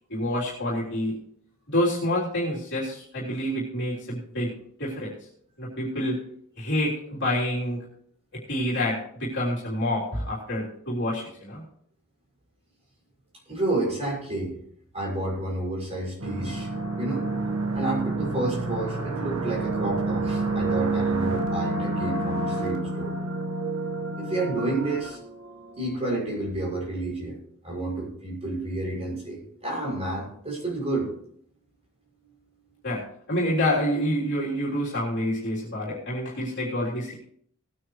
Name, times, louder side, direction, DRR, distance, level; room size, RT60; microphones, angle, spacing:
voice 1, 0.1-1.2 1.7-4.5 4.8-5.1 5.6-6.2 6.6-7.8 8.5-11.6 32.8-33.0 33.3-37.1, left 1 dB, 55° left, -7 dB, 3.5 m, -27 dB
voice 2, 13.5-14.5 14.9-16.7 17.0-17.2 17.7-23.1 24.2-25.2 25.7-27.4 27.6-31.1, right 2 dB, 30° right, -3 dB, 6.3 m, -30 dB
sound 1, 16.2-26.0, right 2 dB, 85° right, 1.4 m, -29 dB
19.0 x 9.5 x 3.2 m, 0.65 s
head